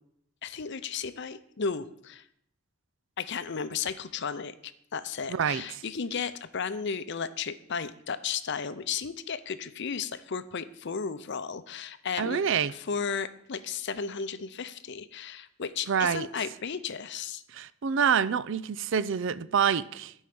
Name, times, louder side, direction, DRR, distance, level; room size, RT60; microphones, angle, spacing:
voice 1, 0.4-2.2 3.2-12.4 12.7-17.4, left 6 dB, 55° left, 0.6 m, -34 dB
voice 2, 5.3-5.8 12.2-12.7 15.9-16.3 17.5-20.1, right 7 dB, 60° right, 0.4 m, -27 dB
12.5 x 5.5 x 7.6 m
head